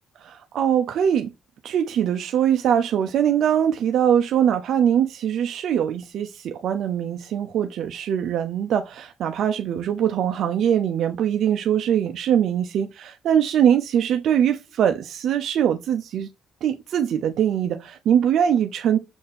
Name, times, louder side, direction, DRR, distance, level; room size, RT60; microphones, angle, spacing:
voice 1, 0.2-1.3 1.6-16.3 16.6-19.0, right 9 dB, 70° right, 0.6 m, -22 dB
6.7 x 4.1 x 3.4 m
cardioid pair, 90°, 0 cm